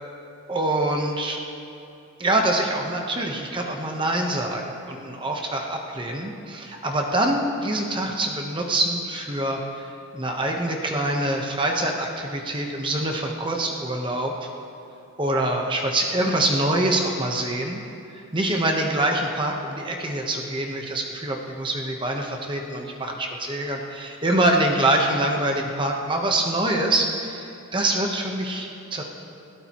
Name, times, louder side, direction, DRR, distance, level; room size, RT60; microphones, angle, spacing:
voice 1, 0.5-1.4 2.2-9.8 10.1-14.5 15.2-17.8 18.3-29.0, right 1 dB, 20° right, 1 dB, 1.0 m, -25 dB
20.5 x 16.5 x 3.1 m, 2.6 s
head